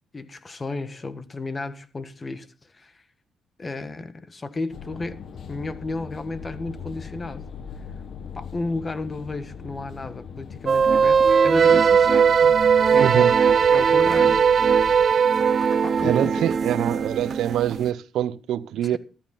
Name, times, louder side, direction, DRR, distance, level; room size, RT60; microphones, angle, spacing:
voice 1, 0.1-2.5 2.7-3.0 3.6-5.2 5.5-7.4 8.3-14.9 15.7-16.4 18.8-19.0, left 3 dB, 30° left, 1.4 m, -33 dB
sound 1, 4.7-15.1, left 6 dB, 55° left, 1.3 m, -40 dB
sound 2, 10.7-17.9, right 6 dB, 45° right, 0.8 m, -18 dB
voice 2, 13.0-13.3 16.0-19.0, right 11 dB, 80° right, 0.6 m, -24 dB
14.0 x 12.0 x 4.0 m
cardioid pair, 90°, 0 cm